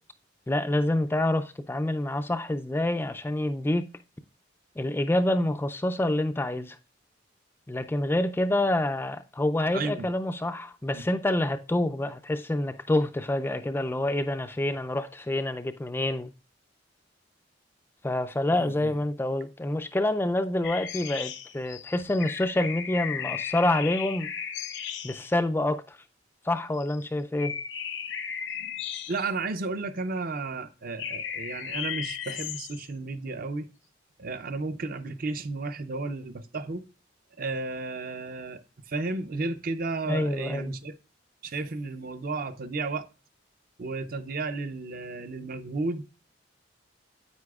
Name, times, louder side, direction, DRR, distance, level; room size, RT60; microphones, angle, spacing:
voice 1, 0.5-3.8 4.8-6.8 7.7-16.3 18.0-24.3 25.0-26.0 26.4-27.5 40.1-40.8, left 1 dB, 10° left, 0.3 m, -27 dB
voice 2, 9.7-10.1 10.9-11.0 18.5-19.0 29.1-33.7 34.2-36.8 37.4-38.6 38.9-40.9 41.4-43.1 43.8-46.0, right 3 dB, 50° right, 0.6 m, -33 dB
sound 1, 20.6-25.3 26.8-27.0 27.4-29.5 31.0-32.9, left 8 dB, 65° left, 0.8 m, -35 dB
9.6 x 8.3 x 2.3 m
head